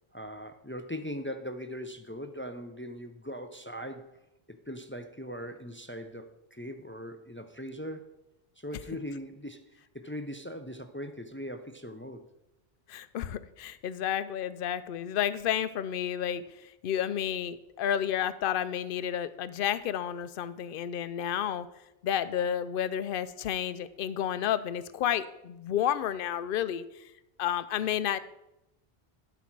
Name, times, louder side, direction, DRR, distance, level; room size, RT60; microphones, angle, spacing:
voice 1, 0.1-4.2 4.5-8.2 8.6-12.2, equal, 20° left, 8 dB, 0.3 m, -40 dB
voice 2, 12.9-21.7 22.0-27.0 27.4-28.2, left 10 dB, 65° left, 14 dB, 0.7 m, -31 dB
12.0 x 6.0 x 4.6 m, 0.91 s
omnidirectional pair, 1.1 m